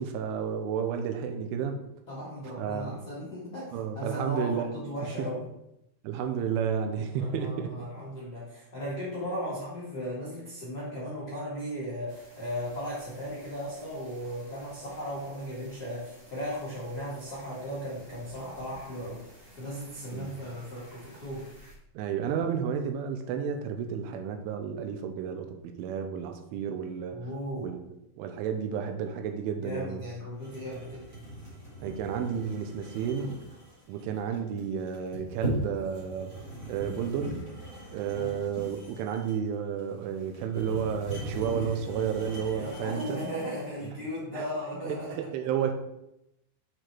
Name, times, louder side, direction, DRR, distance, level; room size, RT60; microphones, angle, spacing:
voice 1, 0.0-1.8 2.6-3.0 3.7-4.8 5.2-5.3 6.0-7.7 20.1-20.3 21.9-27.2 27.6-27.8 28.2-30.0 31.8-33.3 33.9-36.3 36.7-37.4 37.9-43.2 44.0-44.5 44.9-45.7, right 7 dB, 85° right, 6 dB, 3.2 m, -32 dB
voice 2, 2.1-5.4 7.2-19.2 19.6-21.5 27.1-27.7 29.6-31.1 38.1-38.4 42.5-45.2, equal, 85° left, -8 dB, 0.8 m, -36 dB
sound 1, 12.1-21.7, left 1 dB, 60° right, 0.4 m, -53 dB
sound 2, 30.4-43.7, right 1 dB, 30° right, 2.5 m, -40 dB
7.7 x 5.0 x 4.4 m, 0.83 s
omnidirectional pair, 5.5 m